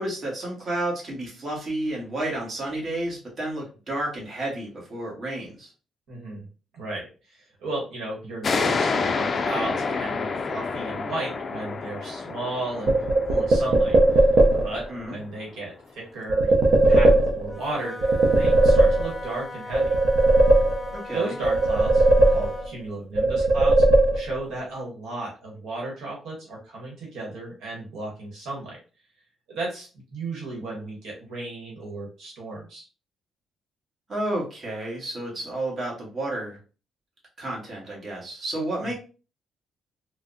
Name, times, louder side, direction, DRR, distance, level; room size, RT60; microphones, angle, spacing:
voice 1, 0.0-5.7 14.9-15.2 20.9-21.3 34.1-36.6 37.4-38.9, right 1 dB, 40° right, -3 dB, 1.2 m, -31 dB
voice 2, 6.1-6.4 6.7-16.6 16.9-19.9 21.1-23.8 24.1-28.8 29.5-32.8 38.8-38.9, right 2 dB, 80° right, -2 dB, 1.1 m, -34 dB
sound 1, 8.4-15.6, left 4 dB, 40° left, 0.3 m, -29 dB
sound 2, 12.9-14.8 16.3-17.7 18.0-19.4 19.7-21.1 21.4-22.8 23.1-24.5, right 2 dB, 60° right, 0.6 m, -18 dB
Wind instrument woodwind instrument, 17.4-22.8, left 2 dB, ahead, 0.7 m, -39 dB
3.3 x 2.0 x 2.6 m, 0.35 s
cardioid pair, 90°, 0 cm